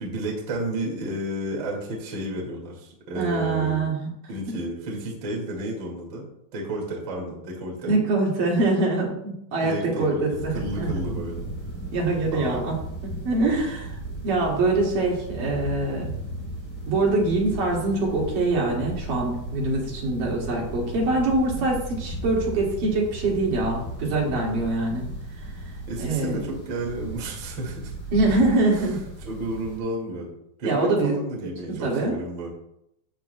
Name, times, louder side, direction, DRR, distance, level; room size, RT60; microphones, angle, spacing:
voice 1, 0.0-3.9 4.3-6.2 6.5-7.9 9.6-10.2 10.5-11.4 12.3-12.7 25.9-27.9 28.7-30.3 30.6-32.5, right 1 dB, 35° right, -2 dB, 2.1 m, -32 dB
voice 2, 3.1-4.1 4.5-4.6 7.9-10.9 11.9-12.8 13.0-14.0 14.2-16.1 16.9-25.1 26.0-26.4 28.1-29.0 30.6-31.2 31.7-32.2, right 2 dB, 60° right, -3 dB, 3.5 m, -24 dB
sound 1, 10.3-29.8, right 2 dB, 5° left, 3.1 m, -35 dB
14.0 x 8.7 x 2.2 m, 0.79 s
omnidirectional pair, 4.6 m